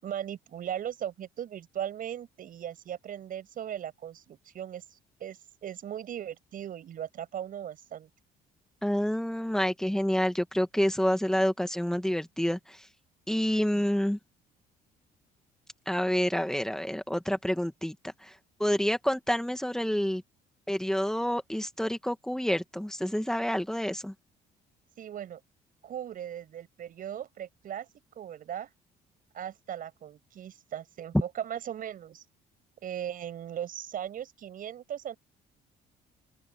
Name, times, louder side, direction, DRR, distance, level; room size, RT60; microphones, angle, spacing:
voice 1, 0.0-8.1 13.7-13.9 25.0-25.4 25.8-27.9 28.2-28.7 29.3-32.2 32.8-35.2, right 10 dB, 55° right, 7.3 m, -38 dB
voice 2, 8.8-12.9 13.3-14.2 15.9-20.2 20.7-24.1, equal, 5° left, 2.0 m, -28 dB
open air
cardioid pair, 110°, 17 cm